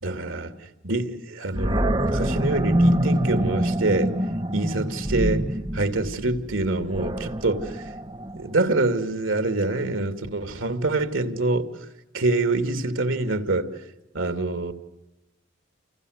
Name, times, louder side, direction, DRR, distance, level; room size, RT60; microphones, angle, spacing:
voice 1, 0.0-4.1 4.5-5.5 5.7-7.9 8.3-11.7 12.1-13.7 14.1-14.7, right 2 dB, 90° right, 2.6 m, -25 dB
Animal, 1.5-8.7, right 1 dB, 25° right, 1.3 m, -25 dB
29.5 x 29.0 x 6.6 m
head